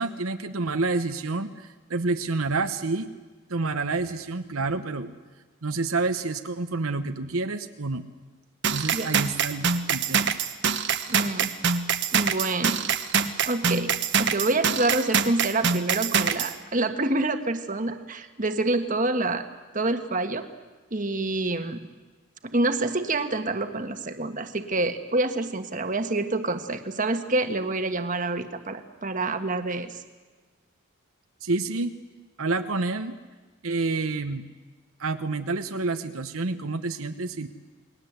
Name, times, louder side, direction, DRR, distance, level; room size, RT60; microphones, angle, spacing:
voice 1, 0.0-3.1 3.5-5.1 5.6-8.0 8.7-10.3 31.4-31.9 32.4-33.1 33.6-34.4 35.0-37.5, right 3 dB, 70° right, 8 dB, 1.1 m, -28 dB
sound 1, 8.6-16.5, right 6 dB, 55° right, 1.3 m, -25 dB
voice 2, 11.1-11.5 12.1-12.8 13.4-13.9 14.2-19.4 19.7-20.4 20.9-21.8 22.4-30.0, right 2 dB, 35° right, 7 dB, 1.5 m, -27 dB
29.0 x 20.5 x 8.1 m, 1.3 s
head